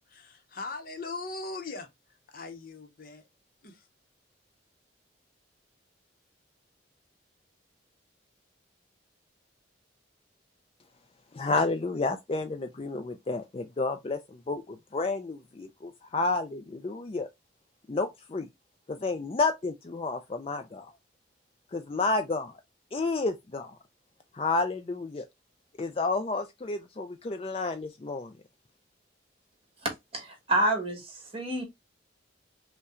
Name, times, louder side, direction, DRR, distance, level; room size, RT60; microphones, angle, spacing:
voice 1, 0.0-1.9 2.3-3.2 3.6-3.8, left 3 dB, 50° left, 0.8 m, -40 dB
voice 2, 11.3-17.3 17.9-18.5 18.9-20.9 21.7-22.5 22.9-23.8 24.3-25.3 25.8-28.3, left 3 dB, 30° left, 0.4 m, -30 dB
voice 3, 29.8-31.6, right 1 dB, 30° right, 1.6 m, -29 dB
5.5 x 2.2 x 3.7 m
head